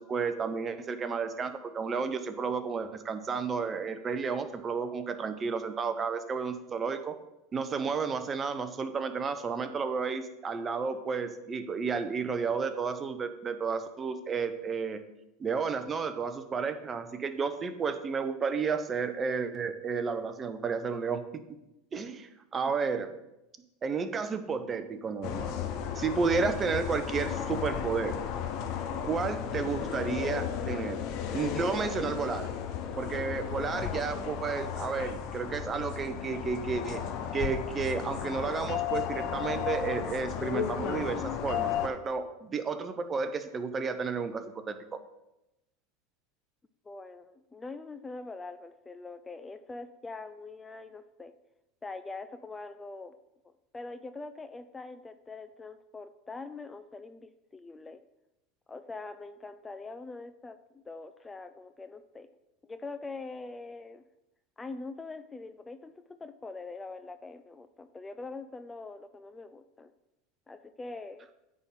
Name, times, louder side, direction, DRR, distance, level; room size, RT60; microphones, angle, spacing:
voice 1, 0.0-7.2 7.5-15.0 15.4-21.4 21.9-23.1 23.8-25.5 26.0-28.2 29.0-31.0 31.3-32.5 33.0-37.0 37.3-45.0, right 5 dB, 30° right, 10 dB, 0.7 m, -32 dB
sound 1, 25.2-41.9, left 9 dB, 55° left, 0.7 m, -34 dB
voice 2, 46.8-51.3 51.8-53.2 53.4-58.0 58.7-62.3 62.6-64.0 64.6-69.9 70.5-71.3, left 3 dB, 15° left, 11 dB, 0.4 m, -43 dB
8.8 x 3.7 x 5.8 m, 0.92 s
hypercardioid pair, 95°, 0 cm